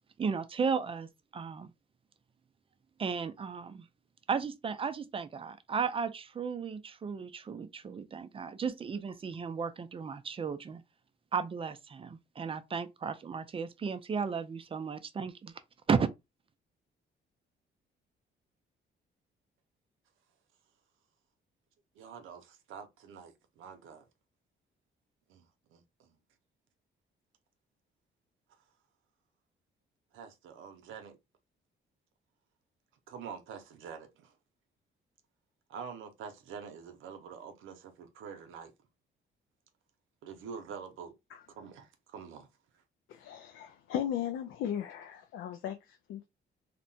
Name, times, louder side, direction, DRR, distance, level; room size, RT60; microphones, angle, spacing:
voice 1, 0.2-1.7 3.0-3.9 4.3-10.8 11.3-15.5 15.9-16.1, right 6 dB, 30° right, 0.4 m, -34 dB
voice 2, 22.0-24.1 25.3-25.4 25.7-26.1 30.1-31.2 33.1-34.3 35.7-38.7 40.2-41.1 41.6-42.5, right 6 dB, 85° right, 0.6 m, -46 dB
voice 3, 43.1-46.3, left 10 dB, 80° left, 0.4 m, -37 dB
2.8 x 2.1 x 2.6 m
cardioid pair, 90°, 20 cm